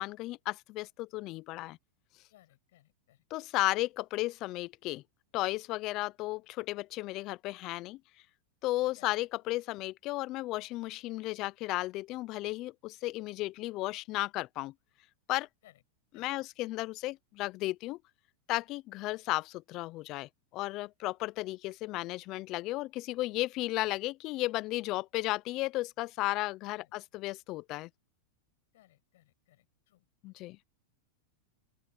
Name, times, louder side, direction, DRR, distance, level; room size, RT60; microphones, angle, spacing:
voice 1, 0.0-1.8 3.3-5.0 5.3-8.0 8.6-14.7 15.3-15.5 16.2-18.0 18.5-27.9 30.2-30.6, left 18 dB, 40° left, 0.4 m, -34 dB
voice 2, 2.3-3.2 8.9-9.2 15.6-15.8 16.1-16.3 26.7-26.9 28.7-30.1, left 15 dB, 70° left, 6.1 m, -63 dB
supercardioid pair, 140°, 0 cm